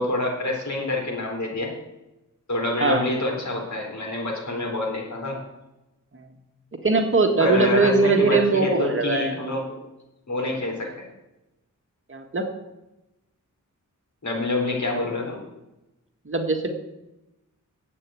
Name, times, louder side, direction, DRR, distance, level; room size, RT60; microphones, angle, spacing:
voice 1, 0.0-1.7 2.5-5.4 7.4-9.7 10.3-11.0 14.2-15.4, left 2 dB, 60° left, 0 dB, 4.2 m, -27 dB
voice 2, 6.8-9.4 12.1-12.5 16.2-16.7, right 3 dB, 40° right, 4 dB, 1.6 m, -21 dB
10.5 x 8.3 x 9.1 m, 0.97 s
wide cardioid pair, 115°, 32 cm